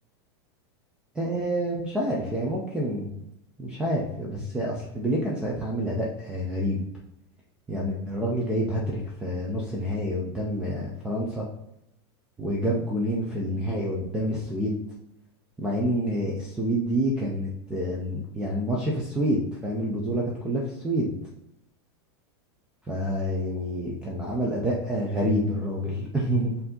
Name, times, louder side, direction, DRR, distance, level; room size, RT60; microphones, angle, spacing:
voice 1, 1.2-3.1 3.6-6.8 7.7-11.5 12.4-14.8 15.6-21.1 22.9-26.5, equal, 5° right, -3 dB, 0.3 m, -28 dB
4.6 x 2.6 x 3.7 m, 0.83 s
supercardioid pair, 170°, 14 cm